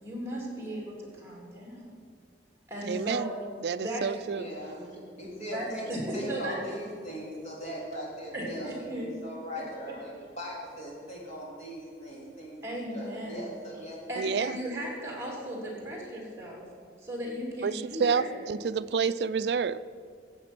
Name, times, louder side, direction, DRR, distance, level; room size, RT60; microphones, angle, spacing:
voice 1, 0.0-1.8 2.7-3.4 3.8-4.0 5.5-6.6 8.3-9.1 12.6-13.4 14.1-16.6 17.0-18.3, equal, 15° right, 3.0 m, -36 dB
voice 2, 2.8-3.3 3.6-4.5 14.2-14.6 17.6-19.8, right 5 dB, 65° right, 0.4 m, -29 dB
voice 3, 4.3-5.9 6.1-14.7, equal, 40° left, 3.4 m, -40 dB
14.5 x 8.3 x 6.0 m
head